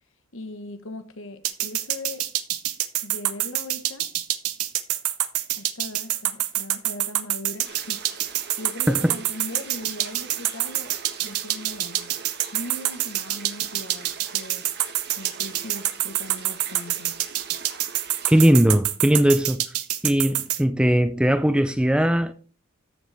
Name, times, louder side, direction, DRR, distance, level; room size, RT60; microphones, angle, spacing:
voice 1, 0.3-2.3 3.0-4.1 5.5-8.2 8.6-12.1 12.5-14.7 15.2-17.2, left 2 dB, 60° left, 1.3 m, -39 dB
sound 1, 1.4-20.6, right 14 dB, 85° right, 0.8 m, -26 dB
sound 2, 7.6-18.5, right 6 dB, 50° right, 1.4 m, -42 dB
voice 2, 18.3-19.6 20.0-22.3, equal, 5° right, 0.4 m, -19 dB
14.0 x 6.5 x 3.4 m
head